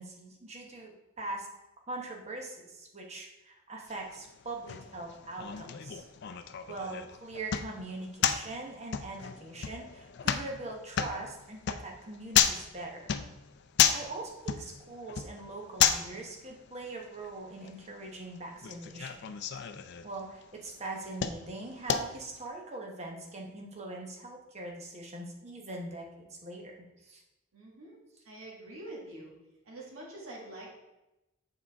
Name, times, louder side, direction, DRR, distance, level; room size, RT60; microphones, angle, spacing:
voice 1, 0.0-1.5 1.9-6.0 6.7-13.1 13.9-19.2 20.0-27.2, right 2 dB, 30° right, 1 dB, 1.0 m, -42 dB
sound 1, 3.9-22.5, left 9 dB, 55° left, 0.4 m, -33 dB
voice 2, 27.5-28.0 28.2-29.3 29.6-30.7, right 1 dB, 90° right, -4 dB, 1.7 m, -45 dB
7.3 x 5.0 x 3.4 m, 0.96 s
head